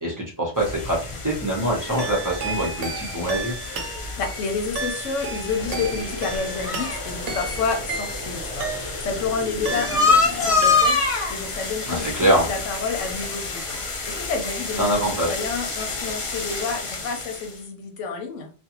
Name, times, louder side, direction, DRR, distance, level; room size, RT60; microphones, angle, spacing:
voice 1, 0.0-3.5 11.9-12.5 14.8-15.4, right 1 dB, 20° right, -2 dB, 0.7 m, -24 dB
sound 1, 0.6-17.6, left 4 dB, 50° left, 0.3 m, -27 dB
sound 2, 2.0-9.2 9.6-10.3 10.6-11.2, right 4 dB, 75° right, 0.9 m, -33 dB
voice 2, 4.2-13.8 14.1-18.5, left 5 dB, 85° left, 4 dB, 0.9 m, -30 dB
sound 3, 5.6-10.8, equal, 20° left, 0.9 m, -37 dB
2.5 x 2.3 x 2.9 m, 0.36 s
omnidirectional pair, 1.3 m